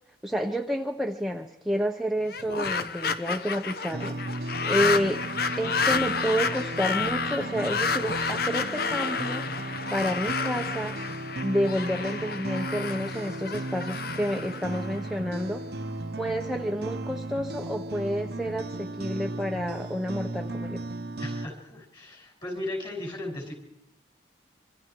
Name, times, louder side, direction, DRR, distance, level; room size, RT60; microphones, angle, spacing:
voice 1, 0.2-5.2 5.6-9.5 9.9-11.0 11.4-15.6 16.1-20.8, equal, ahead, 2 dB, 0.8 m, -29 dB
sound 1, 2.2-15.4, left 5 dB, 50° left, 1.0 m, -30 dB
sound 2, 3.9-21.5, right 2 dB, 55° right, 0.8 m, -35 dB
voice 2, 21.2-23.6, left 1 dB, 25° left, 1 dB, 6.3 m, -36 dB
26.0 x 25.5 x 4.7 m, 0.85 s
head